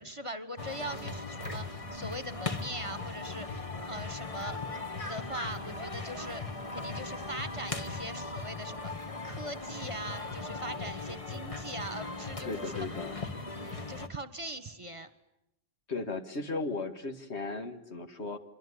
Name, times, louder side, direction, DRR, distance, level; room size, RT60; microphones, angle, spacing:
voice 1, 0.0-4.6 5.0-12.9 13.5-15.1, right 1 dB, 30° right, 13 dB, 1.4 m, -41 dB
sound 1, 0.6-14.1, left 3 dB, 30° left, 1.7 m, -38 dB
voice 2, 12.5-13.2 15.9-18.4, left 3 dB, 85° left, 8 dB, 2.1 m, -36 dB
25.5 x 23.5 x 10.0 m, 0.83 s
omnidirectional pair, 1.1 m